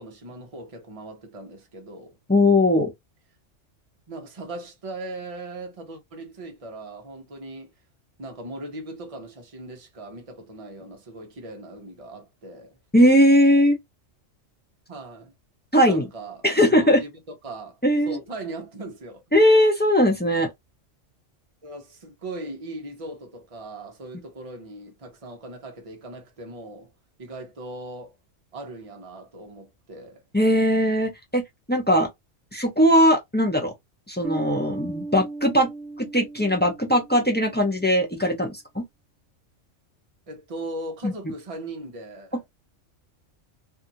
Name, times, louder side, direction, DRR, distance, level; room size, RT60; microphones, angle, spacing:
voice 1, 0.0-2.2 4.1-7.7 8.2-12.8 14.9-15.3 15.8-17.8 18.1-19.2 21.6-26.9 27.2-28.2 28.5-30.2 40.3-42.4, right 2 dB, 30° right, 0.8 m, -39 dB
voice 2, 2.3-2.9 12.9-13.8 15.7-16.1 16.4-17.0 17.8-18.2 19.3-20.5 30.3-31.4 31.7-32.1 32.5-33.7 34.1-35.7 36.0-38.8 41.0-41.1, equal, 10° left, 0.5 m, -19 dB
sound 1, 34.2-37.6, right 2 dB, 60° right, 0.8 m, -36 dB
2.7 x 2.5 x 2.7 m
omnidirectional pair, 1.3 m